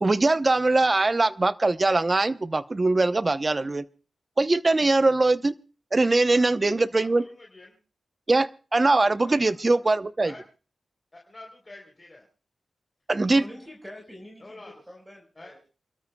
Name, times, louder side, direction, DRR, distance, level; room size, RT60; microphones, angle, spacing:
voice 1, 0.0-3.8 4.4-5.5 5.9-7.2 8.3-10.3 13.1-13.4, right 2 dB, 30° right, 13 dB, 0.7 m, -22 dB
voice 2, 6.3-7.8 9.2-9.8 10.2-10.4 11.1-12.2 14.4-14.7 15.4-15.5, left 2 dB, 30° left, 0 dB, 3.5 m, -48 dB
voice 3, 13.2-15.7, left 1 dB, 5° right, 1 dB, 4.5 m, -45 dB
29.0 x 13.0 x 2.3 m, 0.37 s
cardioid pair, 75°, 0 cm